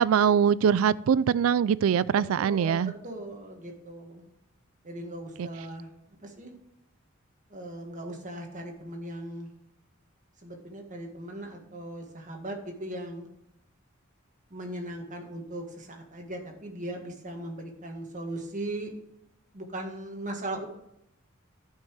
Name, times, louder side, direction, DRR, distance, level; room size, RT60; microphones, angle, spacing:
voice 1, 0.0-2.9 5.4-5.5, right 7 dB, 75° right, 20 dB, 0.3 m, -23 dB
voice 2, 2.4-4.3 4.8-5.9 6.2-6.6 7.5-9.5 10.4-13.3 14.5-18.9 19.5-20.7, right 1 dB, 40° right, 3 dB, 1.7 m, -38 dB
11.5 x 5.6 x 4.7 m, 0.81 s
head